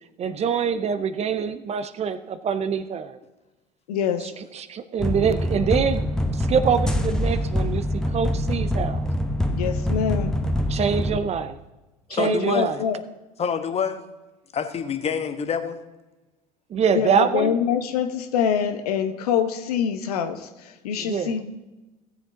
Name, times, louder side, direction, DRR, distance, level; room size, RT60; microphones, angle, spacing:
voice 1, 0.2-3.2 4.2-6.1 6.3-9.1 10.7-11.6 12.1-12.8 16.7-17.6 21.0-21.4, right 7 dB, 35° right, 13 dB, 0.6 m, -25 dB
voice 2, 3.9-4.3 9.5-10.4 12.1-13.0 16.9-21.5, left 8 dB, 80° left, 8 dB, 0.9 m, -25 dB
sound 1, 5.0-11.2, left 1 dB, 5° left, 1.0 m, -25 dB
voice 3, 12.2-12.7 13.4-14.1 14.5-15.8, left 7 dB, 30° left, 8 dB, 1.2 m, -27 dB
15.5 x 7.3 x 3.8 m, 1.1 s
hypercardioid pair, 75°, 19 cm